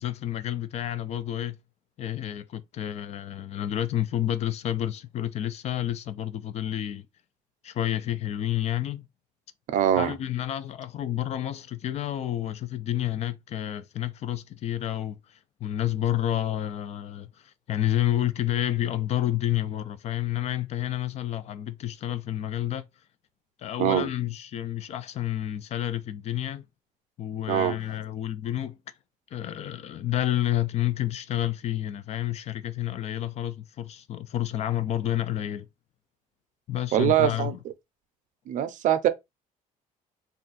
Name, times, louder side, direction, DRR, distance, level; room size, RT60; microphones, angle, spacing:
voice 1, 0.0-1.6 2.0-7.1 7.6-9.1 10.0-22.8 23.6-26.7 27.2-28.8 29.3-35.7 36.7-37.6, left 12 dB, 45° left, 0.4 m, -30 dB
voice 2, 9.7-10.2 23.8-24.1 27.5-27.8 36.9-37.5 38.5-39.1, right 11 dB, 60° right, 0.5 m, -23 dB
2.5 x 2.2 x 3.9 m
cardioid pair, 125°, 15 cm